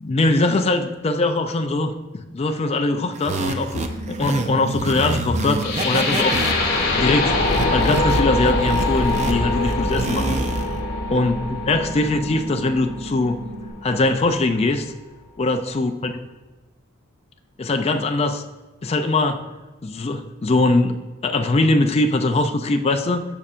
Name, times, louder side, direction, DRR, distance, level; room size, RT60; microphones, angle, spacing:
voice 1, 0.0-1.9 2.3-7.4 7.7-10.4 11.1-11.4 11.7-13.4 13.8-14.9 15.4-16.1 17.6-18.4 18.8-19.4 19.8-23.3, left 2 dB, 30° left, 6 dB, 0.4 m, -21 dB
sound 1, 3.2-10.8, right 2 dB, 35° right, 0.6 m, -27 dB
sound 2, 3.7-13.7, right 1 dB, 10° right, 2.4 m, -36 dB
sound 3, 5.6-13.6, left 2 dB, 55° left, 2.0 m, -24 dB
14.0 x 5.5 x 2.5 m, 1.2 s
head